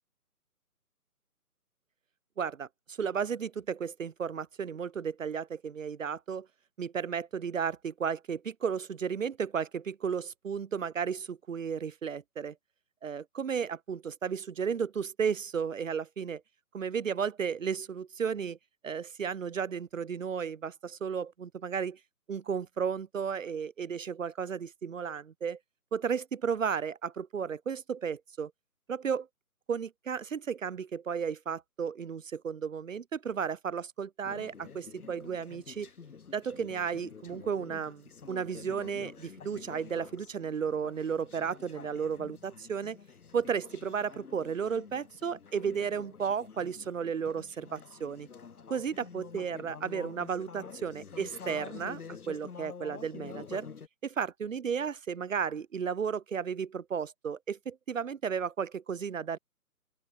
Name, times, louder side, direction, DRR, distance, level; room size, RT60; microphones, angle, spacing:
voice 1, 2.4-6.5 6.8-12.5 13.0-16.4 16.7-18.6 18.8-22.0 22.3-25.6 25.9-28.5 28.9-29.3 29.7-35.9 36.3-43.0 43.3-48.3 48.7-52.0 52.3-53.7 54.0-59.4, right 6 dB, 55° right, 0.8 m, -34 dB
Conversation / Chatter, 34.2-53.9, left 6 dB, 70° left, 1.2 m, -48 dB
open air
figure-of-eight pair, 150°, 46 cm